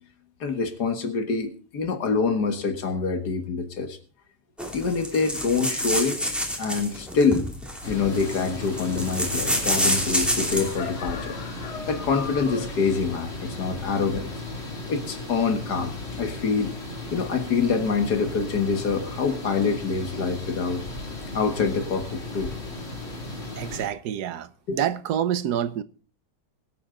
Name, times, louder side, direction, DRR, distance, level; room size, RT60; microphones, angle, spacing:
voice 1, 0.4-4.0 4.7-6.2 6.6-7.5 7.9-14.3 14.9-16.7 17.1-20.8 21.3-22.5 24.7-24.8, left 5 dB, 70° left, 2.1 m, -26 dB
sound 1, 4.6-10.8, equal, ahead, 2.6 m, -28 dB
sound 2, 7.8-23.9, left 2 dB, 40° left, 3.1 m, -35 dB
voice 2, 23.6-25.8, right 10 dB, 70° right, 1.3 m, -27 dB
22.0 x 8.6 x 3.8 m
omnidirectional pair, 1.8 m